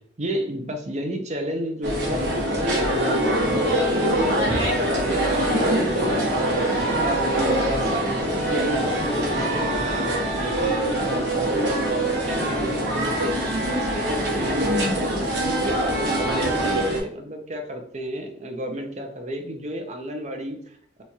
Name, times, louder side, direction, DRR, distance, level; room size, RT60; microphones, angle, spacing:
voice 1, 0.2-6.6 7.0-21.0, equal, 40° right, 5 dB, 0.6 m, -32 dB
sound 1, 1.8-17.0, right 1 dB, 75° right, 1.1 m, -23 dB
3.1 x 2.3 x 4.1 m, 0.63 s
head